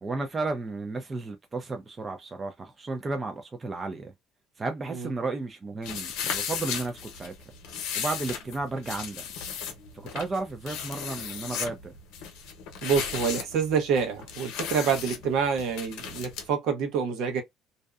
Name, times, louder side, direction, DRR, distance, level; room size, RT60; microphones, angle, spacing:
voice 1, 0.0-4.1 4.6-7.3 8.0-9.2 10.1-11.9, right 3 dB, 20° right, 0.4 m, -33 dB
sound 1, 5.8-16.5, left 7 dB, 85° left, 0.7 m, -36 dB
voice 2, 12.8-17.4, right 6 dB, 65° right, 0.9 m, -27 dB
2.6 x 2.1 x 2.3 m
cardioid pair, 140°, 0 cm